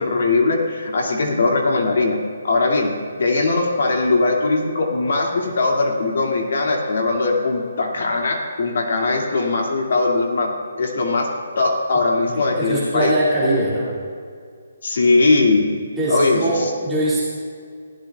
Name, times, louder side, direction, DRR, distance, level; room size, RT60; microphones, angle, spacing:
voice 1, 0.0-2.2 2.4-13.1 14.8-15.7 16.1-16.7, left 3 dB, 60° left, 1 dB, 2.2 m, -20 dB
voice 2, 12.3-13.9 16.0-17.2, right 1 dB, 5° right, -10 dB, 2.3 m, -22 dB
20.0 x 15.5 x 2.4 m, 2.1 s
hypercardioid pair, 170°, 0 cm